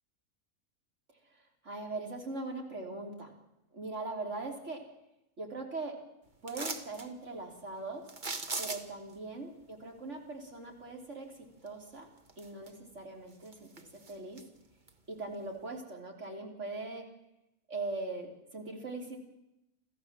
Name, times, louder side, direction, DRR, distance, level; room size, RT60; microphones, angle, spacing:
voice 1, 1.6-3.3 3.7-4.8 5.4-6.0 6.4-8.0 8.6-11.3 11.6-12.1 12.4-14.4 15.1-17.1 17.7-19.2, right 3 dB, 55° right, 2 dB, 3.8 m, -40 dB
sound 1, 6.5-7.1 8.1-9.1 11.7-11.8 12.3-13.0 13.3-14.4 14.9-15.0, right 3 dB, 35° right, 1.5 m, -39 dB
27.0 x 15.0 x 7.5 m, 0.89 s
omnidirectional pair, 1.4 m